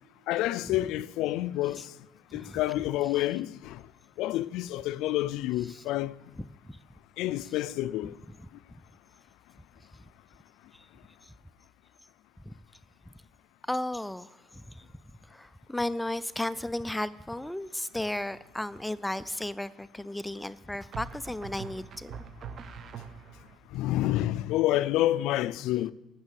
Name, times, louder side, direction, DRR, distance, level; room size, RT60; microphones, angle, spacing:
voice 1, 0.3-1.9 2.3-3.8 4.2-6.2 7.2-8.2 23.7-25.9, left 15 dB, 75° left, 0.4 m, -28 dB
voice 2, 6.4-6.8 7.4-7.5 8.3-8.5 12.5-12.6 13.7-14.8 15.3-22.1, left 1 dB, 5° left, 0.3 m, -35 dB
sound 1, 18.3-18.8 20.9-23.6, right 6 dB, 45° right, 0.8 m, -43 dB
12.5 x 6.1 x 7.4 m
cardioid pair, 130°, 0 cm